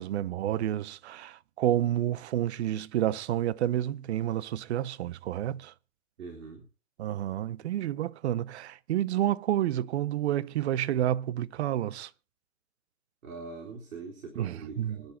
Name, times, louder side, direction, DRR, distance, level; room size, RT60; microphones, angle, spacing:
voice 1, 0.0-5.7 7.0-12.1 14.4-15.0, right 12 dB, 50° right, 0.7 m, -29 dB
voice 2, 6.2-6.6 13.2-15.1, right 4 dB, 75° right, 4.1 m, -43 dB
26.0 x 10.5 x 2.9 m
hypercardioid pair, 140°, 41 cm